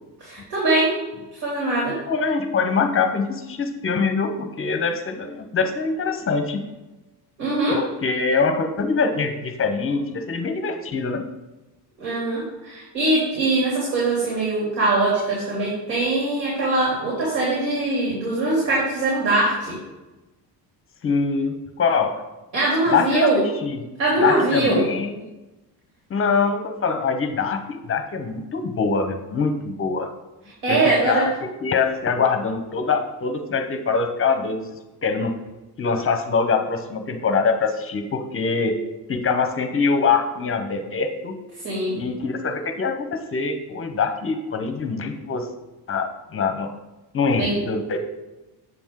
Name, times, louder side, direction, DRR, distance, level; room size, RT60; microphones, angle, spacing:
voice 1, 0.2-0.9 1.3-2.0 7.4-7.8 12.0-19.8 22.5-23.4 24.0-24.8 30.6-31.3 41.6-42.0 47.4-47.6, right 2 dB, 85° right, -5 dB, 2.9 m, -22 dB
voice 2, 2.1-6.6 7.7-11.2 21.0-22.2 22.9-23.3 23.6-23.8 24.2-25.2 26.1-30.1 30.7-30.8 31.1-34.7 35.0-35.3 35.8-38.8 39.1-41.3 41.9-45.5 45.9-46.7 47.1-48.0, left 5 dB, 30° left, 7 dB, 0.8 m, -23 dB
8.0 x 6.0 x 3.7 m, 1.0 s
cardioid pair, 130°, 43 cm